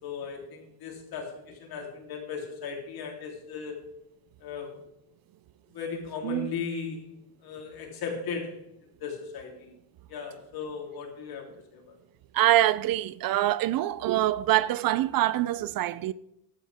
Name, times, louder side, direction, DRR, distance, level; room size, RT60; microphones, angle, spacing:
voice 1, 0.0-3.8 4.4-4.7 5.7-7.1 7.4-8.6 9.0-9.7 10.1-11.5 11.7-12.0, left 5 dB, 60° left, 3.4 m, -37 dB
voice 2, 12.3-16.1, right 14 dB, 55° right, 0.5 m, -25 dB
14.0 x 11.0 x 3.5 m
cardioid pair, 145°, 41 cm